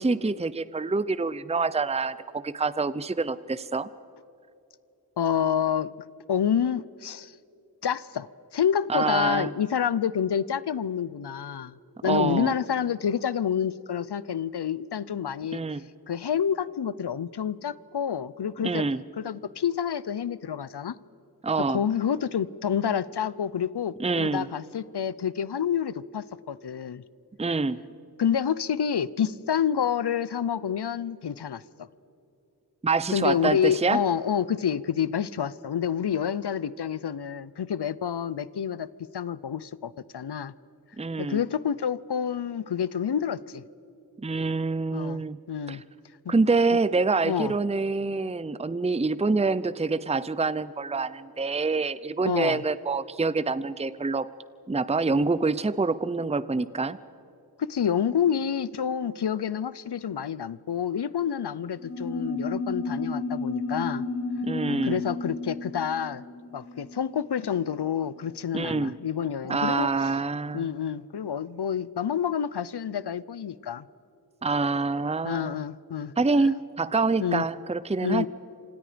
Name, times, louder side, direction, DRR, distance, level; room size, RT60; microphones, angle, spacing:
voice 1, 0.0-3.9 8.9-9.5 12.0-12.5 15.5-15.8 18.6-19.0 21.4-21.8 24.0-24.5 27.4-27.8 32.8-34.0 41.0-41.4 44.2-45.4 45.7-45.8 46.3-54.3 54.7-57.0 64.4-65.0 68.5-69.0 69.4-70.7 74.4-75.6 76.2-78.3, right 3 dB, 15° right, 16 dB, 0.6 m, -26 dB
voice 2, 5.2-5.9 6.3-7.3 7.8-8.3 8.5-11.7 12.0-15.6 16.1-18.8 19.2-21.0 21.7-27.0 28.2-31.9 33.1-38.9 39.1-40.5 41.2-43.6 44.9-45.2 45.5-45.8 46.3-46.4 47.2-47.5 52.2-52.6 57.7-64.0 64.7-66.2 66.5-70.1 70.5-73.8 75.2-76.1 77.2-77.4 78.0-78.3, left 8 dB, 85° left, 19 dB, 0.7 m, -28 dB
sound 1, 61.8-67.7, left 3 dB, 35° left, 4.0 m, -32 dB
30.0 x 26.0 x 5.1 m, 2.7 s
wide cardioid pair, 70°, 39 cm